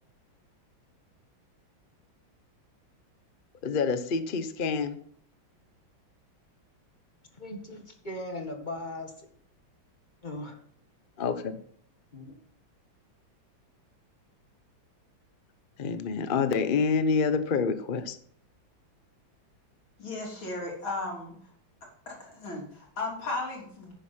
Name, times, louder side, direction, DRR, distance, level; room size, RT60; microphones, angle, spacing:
voice 1, 3.6-5.0 11.2-11.6 15.8-18.2, left 5 dB, 55° left, 10 dB, 0.5 m, -27 dB
voice 2, 7.4-9.3 10.2-10.6 12.1-12.3, left 1 dB, 25° left, 4 dB, 1.7 m, -38 dB
voice 3, 20.0-21.4 22.1-23.9, left 2 dB, 85° left, -1 dB, 4.2 m, -35 dB
10.5 x 9.2 x 4.4 m, 0.62 s
omnidirectional pair, 2.1 m